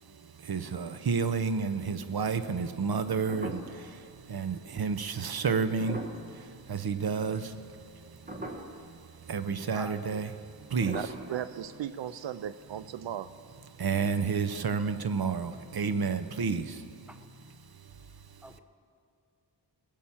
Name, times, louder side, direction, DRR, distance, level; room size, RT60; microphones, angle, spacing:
voice 1, 0.5-3.6 4.3-6.0 6.7-7.5 9.3-10.3 10.7-11.1 13.8-16.7, right 5 dB, 55° right, 11 dB, 0.8 m, -30 dB
sound 1, 1.5-1.9 2.4-2.5 2.9-4.0 4.4-4.6 5.6-7.1 7.5-7.9 8.2-8.9 9.3-9.4 9.6-9.8 10.7-12.3 12.6-12.7, right 1 dB, 20° right, 1.3 m, -41 dB
voice 2, 9.7-10.3 11.3-11.5 17.1-17.2 18.4-18.6, right 1 dB, 5° right, 7 dB, 0.8 m, -45 dB
voice 3, 10.9-13.3, right 10 dB, 85° right, 14 dB, 0.5 m, -37 dB
20.0 x 7.4 x 7.2 m, 2.3 s
wide cardioid pair, 100°, 43 cm